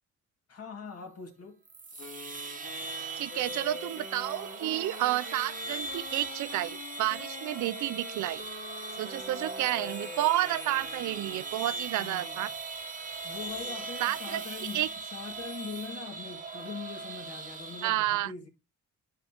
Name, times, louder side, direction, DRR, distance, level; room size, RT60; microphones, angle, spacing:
voice 1, 0.5-1.6 12.0-12.5 13.2-14.8 15.1-18.5, left 5 dB, 55° left, 2.2 m, -42 dB
sound 1, 1.7-17.9, right 3 dB, 25° right, 1.1 m, -39 dB
Wind instrument woodwind instrument, 2.0-11.6, left 4 dB, 70° left, 2.2 m, -46 dB
voice 2, 3.2-8.4 9.0-12.5 14.0-14.9 17.8-18.3, right 15 dB, 75° right, 0.5 m, -30 dB
11.0 x 4.2 x 2.9 m
cardioid pair, 90°, 30 cm